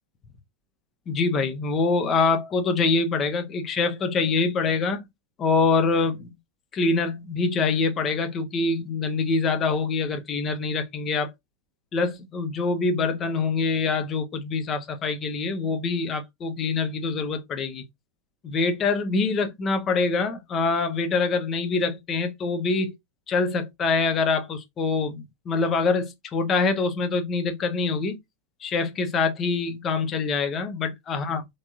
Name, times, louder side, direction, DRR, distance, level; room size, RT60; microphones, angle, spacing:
voice 1, 1.1-5.0 5.4-6.3 6.7-11.3 11.9-17.8 18.4-22.9 23.3-28.2 28.6-31.4, left 4 dB, 25° left, 0.9 m, -25 dB
3.4 x 3.2 x 2.7 m
figure-of-eight pair, 90°, 0 cm